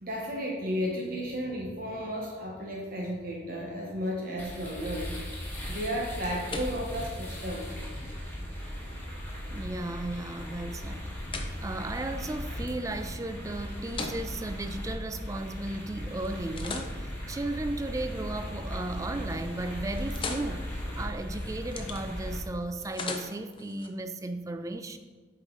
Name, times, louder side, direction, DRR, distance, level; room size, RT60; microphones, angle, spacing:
voice 1, 0.0-5.3 5.7-7.7, equal, 50° right, -2 dB, 1.0 m, -33 dB
sound 1, 4.4-22.4, equal, 10° left, 1.4 m, -37 dB
sound 2, 5.8-15.8 16.2-18.5 18.9-19.3 19.6-23.9, left 4 dB, 25° left, 0.6 m, -43 dB
voice 2, 9.5-11.1 11.6-20.7 21.0-25.0, right 2 dB, 15° right, 9 dB, 0.3 m, -35 dB
7.4 x 5.0 x 3.8 m, 1.4 s
head